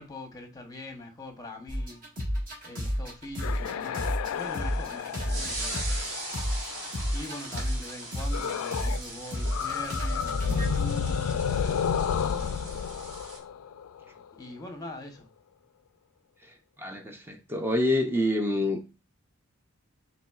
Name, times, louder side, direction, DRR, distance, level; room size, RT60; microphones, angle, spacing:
voice 1, 0.0-2.0 2.6-4.0 4.3-5.8 7.1-11.4 12.2-12.6 14.3-15.3, left 2 dB, 15° left, 0.8 m, -42 dB
sound 1, 1.7-4.3 4.5-10.8, equal, 40° right, 1.5 m, -31 dB
sound 2, 3.3-7.2 8.3-9.1 9.3-14.2, left 7 dB, 70° left, 0.3 m, -31 dB
sound 3, 4.4-13.4, right 2 dB, 60° right, 2.4 m, -40 dB
voice 2, 16.8-18.9, left 1 dB, 10° right, 0.5 m, -27 dB
5.6 x 3.1 x 2.3 m
head